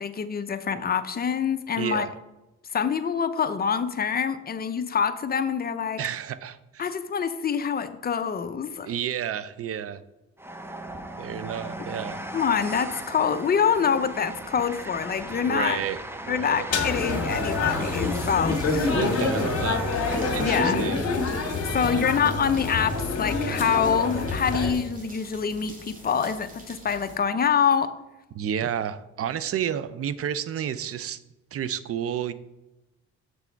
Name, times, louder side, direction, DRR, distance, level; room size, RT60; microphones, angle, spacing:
voice 1, 0.0-2.1 2.7-6.0 6.8-8.9 12.3-15.8 16.3-18.9 20.4-20.9 21.7-27.9, left 7 dB, 30° left, 9 dB, 0.6 m, -25 dB
voice 2, 1.8-2.1 6.0-6.9 8.8-10.0 11.2-12.2 15.5-16.7 18.8-19.9 20.3-21.0 21.9-22.0 28.3-31.2 31.5-32.3, right 9 dB, 50° right, 15 dB, 0.5 m, -31 dB
Train, 10.4-20.9, right 1 dB, 10° right, 0.7 m, -37 dB
sound 1, 16.7-24.7, left 3 dB, 55° left, 1.7 m, -27 dB
sound 2, 16.8-27.2, right 1 dB, 25° right, 1.9 m, -46 dB
6.9 x 6.1 x 4.5 m, 0.99 s
cardioid pair, 90°, 30 cm